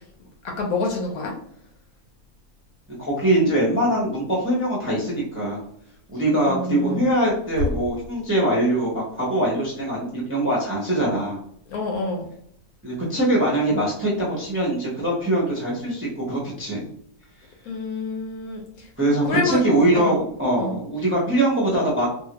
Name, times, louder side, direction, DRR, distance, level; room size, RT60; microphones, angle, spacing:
voice 1, 0.6-1.3 6.4-7.0 11.7-12.3 17.6-18.9 19.2-19.6 19.9-20.1 20.6-20.7, left 3 dB, 75° left, 1 dB, 1.2 m, -27 dB
voice 2, 2.9-5.6 6.1-11.4 12.8-16.8 19.0-22.1, right 1 dB, 15° right, -5 dB, 0.5 m, -22 dB
2.8 x 2.4 x 2.9 m, 0.67 s
omnidirectional pair, 1.6 m